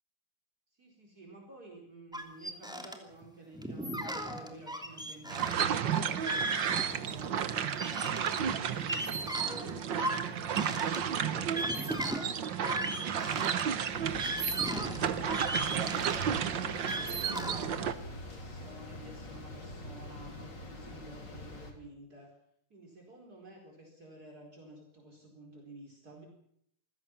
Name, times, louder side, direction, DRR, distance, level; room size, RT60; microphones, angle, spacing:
voice 1, 0.7-9.9 10.3-13.8 14.1-17.2 17.6-22.3 22.7-26.3, right 2 dB, 50° right, 0 dB, 5.1 m, -52 dB
sound 1, 2.1-3.0 3.2-3.3 3.5-7.3 7.6-13.6 14.1-17.7, right 1 dB, ahead, 2.9 m, -37 dB
sound 2, 5.3-17.9, right 8 dB, 75° right, 1.9 m, -32 dB
sound 3, 13.9-21.7, left 2 dB, 65° left, 4.1 m, -45 dB
26.5 x 16.0 x 7.4 m, 0.70 s
omnidirectional pair, 2.0 m